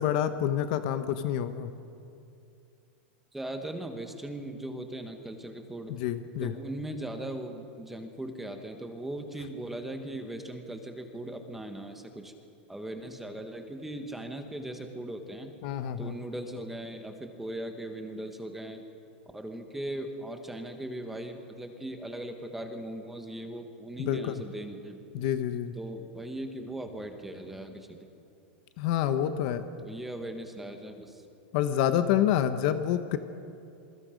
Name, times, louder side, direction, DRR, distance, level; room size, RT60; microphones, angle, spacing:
voice 1, 0.0-1.7 5.9-6.5 15.6-16.1 24.0-24.4 25.1-25.7 28.8-29.6 31.5-33.2, left 10 dB, 45° left, 10 dB, 1.0 m, -27 dB
voice 2, 3.3-5.9 6.4-12.3 12.7-15.5 16.0-18.8 19.3-25.0 25.7-28.1 29.8-31.2, right 1 dB, 5° right, 5 dB, 1.4 m, -39 dB
27.5 x 23.0 x 5.2 m, 2.6 s
supercardioid pair, 170°, 6 cm